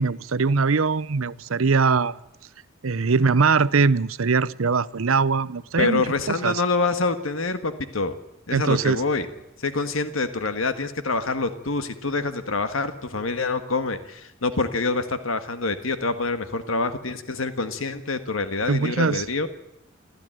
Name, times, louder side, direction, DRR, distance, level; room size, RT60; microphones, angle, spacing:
voice 1, 0.0-2.2 2.8-6.1 6.4-6.6 8.5-9.0 18.7-19.2, right 4 dB, 90° right, 0.7 m, -21 dB
voice 2, 5.8-8.1 8.5-9.3 9.6-19.5, left 3 dB, 80° left, 1.6 m, -26 dB
27.5 x 14.0 x 9.0 m
head